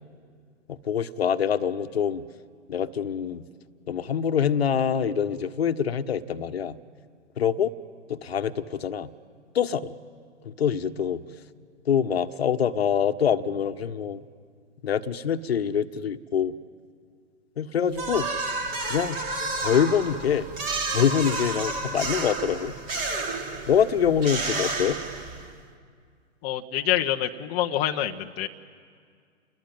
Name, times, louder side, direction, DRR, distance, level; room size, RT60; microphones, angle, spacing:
voice 1, 0.7-2.2 2.7-3.4 3.9-6.8 7.4-7.7 8.1-9.1 9.5-10.0 10.4-11.2 11.8-14.2 14.8-16.5 17.6-18.3 18.9-19.2 19.6-20.5 20.9-22.7 23.7-25.0, left 8 dB, 55° left, 10 dB, 1.3 m, -25 dB
sound 1, 17.9-25.6, right 2 dB, 20° right, 2.4 m, -31 dB
voice 2, 26.4-28.5, left 12 dB, 25° left, 3 dB, 0.9 m, -26 dB
29.0 x 21.5 x 9.5 m, 2.1 s
figure-of-eight pair, 125°, 37 cm